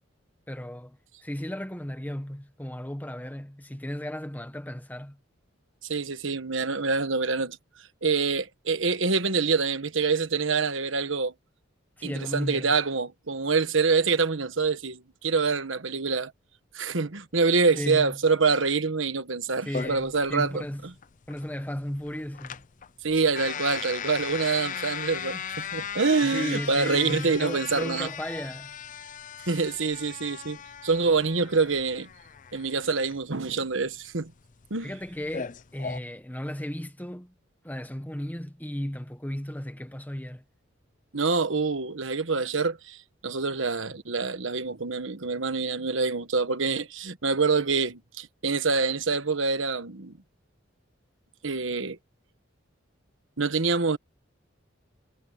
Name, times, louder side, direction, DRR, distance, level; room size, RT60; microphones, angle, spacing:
voice 1, 0.5-5.2 12.0-12.7 17.7-18.2 19.6-20.9 21.3-22.6 26.2-28.8 34.8-37.3 37.6-40.4, equal, 10° left, 1.3 m, -35 dB
voice 2, 5.9-7.6 8.0-11.3 12.0-16.3 16.7-20.9 23.0-28.1 29.4-32.1 32.5-34.3 34.7-34.9 41.1-43.0 43.2-50.2 51.4-52.0 53.4-54.0, right 4 dB, 70° right, 1.4 m, -26 dB
sound 1, 19.7-36.0, left 7 dB, 40° left, 0.6 m, -38 dB
head